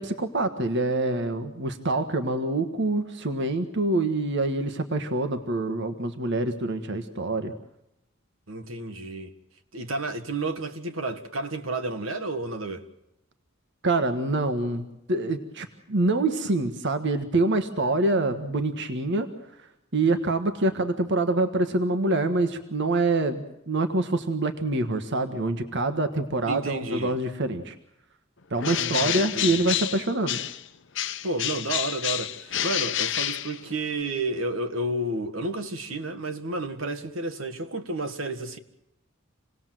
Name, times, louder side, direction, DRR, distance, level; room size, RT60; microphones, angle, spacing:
voice 1, 0.0-7.5 13.8-19.3 19.6-27.7 28.5-30.4, right 2 dB, 60° right, 1.5 m, -26 dB
voice 2, 8.5-9.3 9.7-12.9 26.5-27.2 28.8-29.7 31.2-38.6, right 2 dB, 80° right, 1.8 m, -31 dB
Bird, 28.6-30.7 30.9-34.0, left 11 dB, 65° left, 0.8 m, -29 dB
27.5 x 19.0 x 7.7 m
head